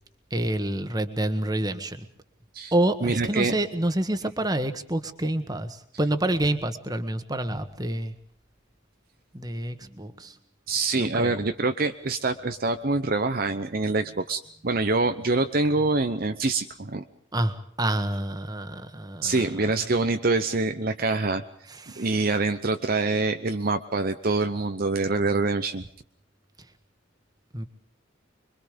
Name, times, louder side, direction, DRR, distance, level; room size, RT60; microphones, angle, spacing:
voice 1, 0.3-2.1 2.7-8.1 9.3-10.3 11.0-11.4 17.3-19.3 21.9-22.1 27.5-27.6, right 1 dB, 20° right, 9 dB, 1.6 m, -28 dB
voice 2, 3.0-3.6 10.7-17.0 19.2-21.4 22.0-25.8, right 3 dB, 45° right, 8 dB, 0.8 m, -25 dB
26.0 x 23.0 x 5.2 m, 0.63 s
head